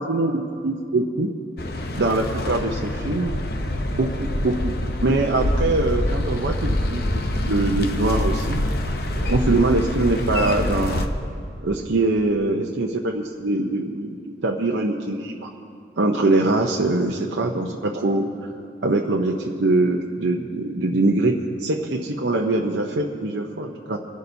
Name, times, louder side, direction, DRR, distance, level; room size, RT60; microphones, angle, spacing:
voice 1, 0.0-1.3 1.9-3.3 3.9-4.7 5.0-8.6 9.1-11.1 11.6-15.5 16.0-18.3 18.8-24.0, right 2 dB, 80° right, 0 dB, 0.8 m, -23 dB
sound 1, 1.6-11.1, left 1 dB, 55° left, 0.8 m, -25 dB
27.5 x 11.0 x 2.7 m, 2.4 s
head